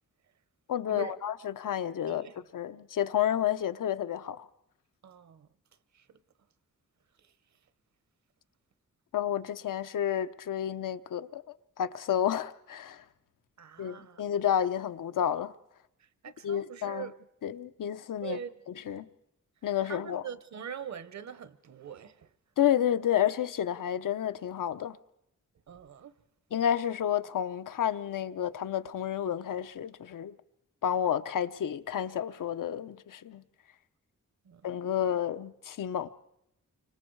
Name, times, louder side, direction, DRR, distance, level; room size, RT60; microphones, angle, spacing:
voice 1, 0.7-2.3 2.5-4.5 9.1-11.4 11.8-13.0 13.8-15.5 16.4-17.1 17.4-18.4 18.9-19.1 19.6-20.2 22.6-25.0 26.5-30.3 30.8-33.4 34.6-36.1, left 10 dB, 90° left, 0.9 m, -30 dB
voice 2, 5.0-5.5 5.9-6.2 7.2-7.3 13.6-14.2 16.0-17.2 18.2-18.5 18.8-19.0 19.8-22.3 25.7-26.1 34.4-34.8, right 8 dB, 60° right, 1.0 m, -43 dB
29.5 x 25.5 x 4.7 m
wide cardioid pair, 175°, 31 cm